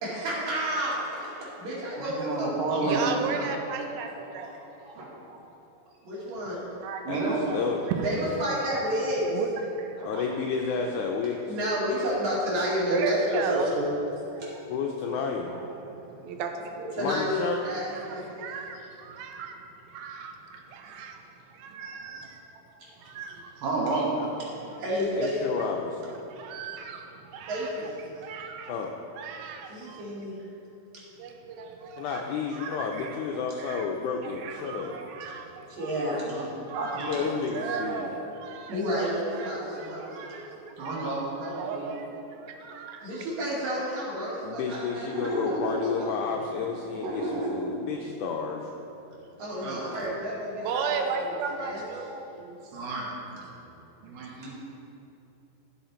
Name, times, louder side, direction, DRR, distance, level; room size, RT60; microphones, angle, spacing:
voice 1, 0.0-3.6 6.0-6.6 8.0-9.3 11.5-13.9 14.4-14.5 16.8-18.4 24.8-25.6 27.5-27.9 29.7-30.4 35.7-36.5 38.7-40.2 43.0-45.5 46.0-46.4 49.4-51.0 51.6-51.8, equal, 55° right, -8 dB, 3.7 m, -30 dB
voice 2, 2.0-3.2 4.4-4.5 4.8-5.4 7.1-7.7 10.0-10.3 10.8-11.0 14.3-14.6 15.1-15.2 15.5-15.7 23.6-24.7 36.2-37.2 40.8-41.9 45.0-46.0 46.6-47.5 49.3-49.9 52.1-52.2 52.7-53.2 54.0-54.6, right 2 dB, 70° right, -3 dB, 3.1 m, -32 dB
voice 3, 2.8-4.6 6.8-7.0 7.9-8.1 9.3-9.5 9.7-10.3 12.9-13.7 14.3-14.4 15.8-16.8 17.6-21.2 21.6-22.4 23.1-23.6 26.3-28.7 29.1-30.1 31.2-32.2 32.5-33.9 34.2-36.2 36.7-41.1 41.4-43.1 49.6-49.7 50.6-52.7 53.5-53.7 54.0-54.3, right 5 dB, 90° right, 4 dB, 2.6 m, -36 dB
voice 4, 7.1-7.8 10.0-11.6 14.7-15.5 17.0-17.6 25.1-26.1 28.7-28.9 32.0-35.0 37.1-38.1 44.4-48.7, left 5 dB, 80° left, 1 dB, 1.8 m, -31 dB
14.5 x 5.6 x 4.3 m, 2.9 s
omnidirectional pair, 4.1 m